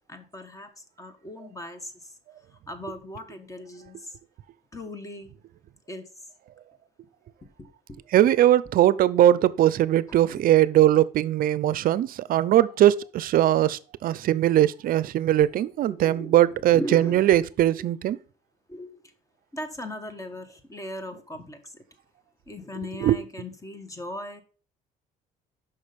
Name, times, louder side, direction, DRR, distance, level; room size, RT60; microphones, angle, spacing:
voice 1, 0.1-0.7 1.0-1.9 2.7-4.0 4.7-5.3 5.9-6.0 7.9-8.0 10.1-10.4 15.4-15.5 15.9-16.3 16.7-17.3 17.8-17.9 18.7-19.0 19.5-21.6 22.5-24.4, left 1 dB, 20° left, 1.3 m, -38 dB
voice 2, 8.1-18.2 23.0-23.2, right 12 dB, 60° right, 0.5 m, -20 dB
6.3 x 5.5 x 5.2 m
cardioid pair, 110°, 17 cm